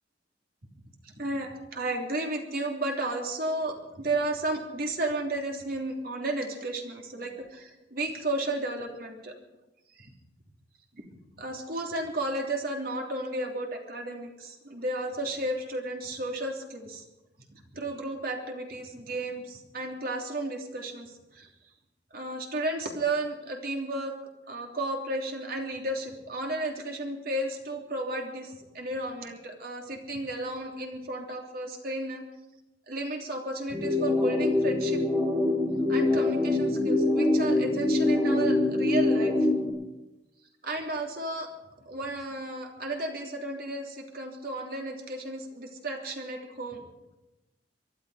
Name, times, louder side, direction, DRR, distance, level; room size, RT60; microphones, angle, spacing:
voice 1, 1.0-9.3 9.9-10.1 10.9-11.0 11.4-17.0 17.5-21.5 22.1-24.1 24.5-32.2 32.9-35.0 35.9-39.3 40.6-41.5 41.8-46.8, right 2 dB, 60° right, 1 dB, 3.2 m, -33 dB
sound 1, 33.7-39.7, left 2 dB, 25° right, 4.5 m, -24 dB
23.5 x 12.0 x 5.0 m, 0.96 s
head